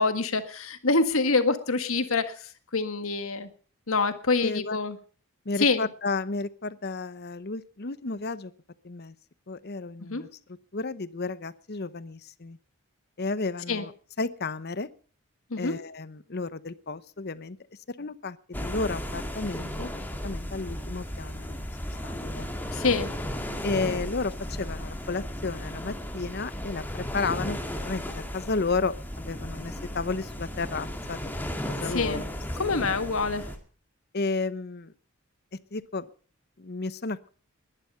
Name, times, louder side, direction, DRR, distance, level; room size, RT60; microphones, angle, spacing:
voice 1, 0.0-3.5 3.9-5.0 5.6-5.9 10.0-10.2 13.7-13.9 15.5-15.8 22.7-23.1 31.8-32.2 32.6-33.5, left 3 dB, 70° left, 10 dB, 1.7 m, -26 dB
voice 2, 4.4-4.8 5.5-8.5 8.8-9.1 9.5-10.3 10.7-12.6 13.2-13.9 14.2-14.9 15.6-17.6 17.9-19.9 20.2-21.5 22.0-22.5 23.6-27.6 27.9-31.3 31.7-32.3 32.7-32.8 34.1-34.9 35.7-36.1 36.6-37.3, left 3 dB, 45° left, 16 dB, 0.8 m, -32 dB
sound 1, 18.5-33.6, equal, 10° left, 2.0 m, -35 dB
20.0 x 11.0 x 5.6 m, 0.41 s
head